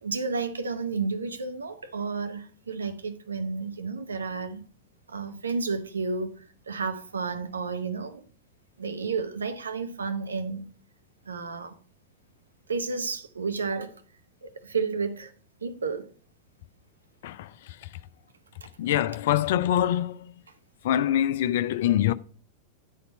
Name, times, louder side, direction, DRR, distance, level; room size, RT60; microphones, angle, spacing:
voice 1, 0.0-4.6 5.1-8.2 8.8-10.6 11.3-11.8 12.7-14.0 14.4-15.3 15.6-16.1 18.6-18.7, right 4 dB, 75° right, 0.7 m, -31 dB
voice 2, 18.8-20.3 20.8-22.1, left 11 dB, 55° left, 0.4 m, -24 dB
9.2 x 4.3 x 5.1 m
figure-of-eight pair, 90°, 0 cm